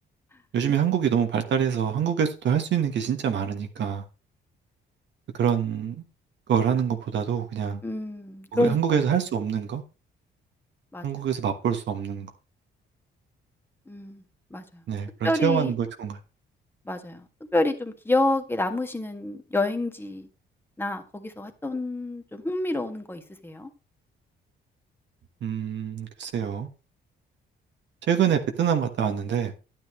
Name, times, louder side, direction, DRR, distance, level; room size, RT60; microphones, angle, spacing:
voice 1, 0.5-4.0 5.3-6.0 6.5-7.8 8.5-9.8 11.0-12.3 14.9-16.2 25.4-26.7 28.1-29.5, right 8 dB, 65° right, 1.4 m, -25 dB
voice 2, 7.8-9.0 10.9-11.1 13.9-14.2 14.5-14.8 15.2-15.7 16.8-20.3 20.8-23.7, left 2 dB, 10° left, 1.6 m, -28 dB
10.5 x 9.2 x 3.1 m
cardioid pair, 90°, 20 cm